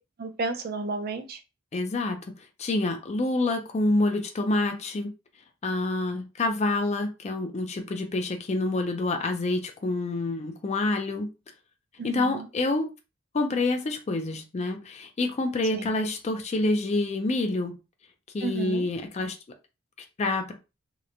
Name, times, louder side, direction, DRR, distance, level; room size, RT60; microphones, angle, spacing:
voice 1, 0.2-1.4 12.0-12.4 15.7-15.9 18.4-18.9, right 3 dB, 45° right, 6 dB, 0.4 m, -32 dB
voice 2, 1.7-2.2 2.6-5.1 5.6-11.3 12.0-12.9 13.3-17.7 18.3-19.4 20.2-20.5, left 2 dB, 30° left, 5 dB, 0.4 m, -27 dB
2.8 x 2.1 x 2.5 m, 0.28 s
head